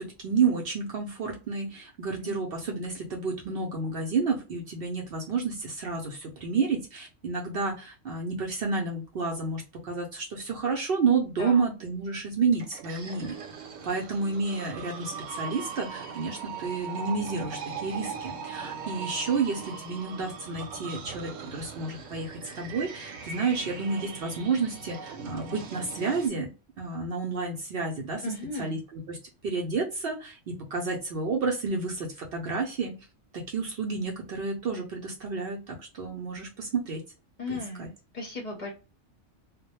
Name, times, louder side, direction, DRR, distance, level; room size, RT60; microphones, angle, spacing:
voice 1, 0.0-13.4 13.8-26.5 26.8-28.2 28.6-28.8 29.1-29.2 29.4-32.9 33.5-37.0 37.5-37.9, right 4 dB, 60° right, 0 dB, 0.7 m, -30 dB
sound 1, 12.5-26.3, right 6 dB, 80° right, 0.9 m, -40 dB
voice 2, 28.2-28.8 37.4-38.7, left 3 dB, 45° left, 0 dB, 0.7 m, -36 dB
2.2 x 2.1 x 2.8 m, 0.32 s
omnidirectional pair, 1.3 m